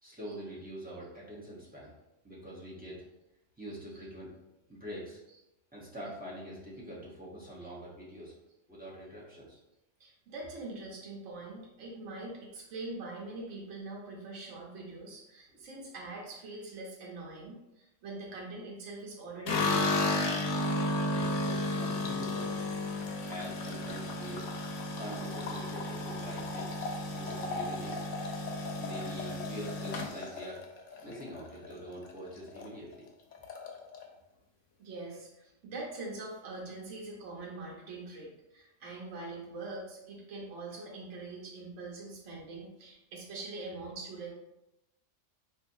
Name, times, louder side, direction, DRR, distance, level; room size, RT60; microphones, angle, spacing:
voice 1, 0.0-1.9 2.2-3.0 3.6-4.3 4.7-5.2 5.7-8.3 8.7-9.6 15.5-15.6 21.1-22.5 23.3-24.5 25.0-26.9 27.1-28.0 28.8-30.6 31.0-33.1, equal, 10° right, -6 dB, 0.8 m, -44 dB
voice 2, 10.0-20.1 34.8-44.3, right 2 dB, 75° right, -3 dB, 1.0 m, -43 dB
sound 1, 19.5-31.7 32.0-32.7 32.9-33.0 33.3-34.0, left 2 dB, 80° left, 1.0 m, -33 dB
4.3 x 2.6 x 2.6 m, 0.92 s
omnidirectional pair, 1.3 m